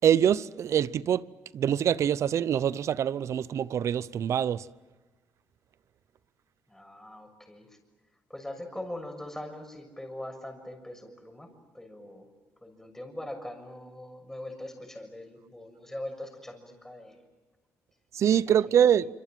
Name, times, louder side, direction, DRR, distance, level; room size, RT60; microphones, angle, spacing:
voice 1, 0.0-1.2 1.5-4.7 18.1-19.1, right 9 dB, 60° right, 0.7 m, -24 dB
voice 2, 6.7-7.8 8.3-11.5 11.7-12.3 12.6-17.2 18.8-18.9, left 1 dB, 5° left, 6.8 m, -41 dB
26.5 x 25.5 x 7.6 m
cardioid pair, 80°, 6 cm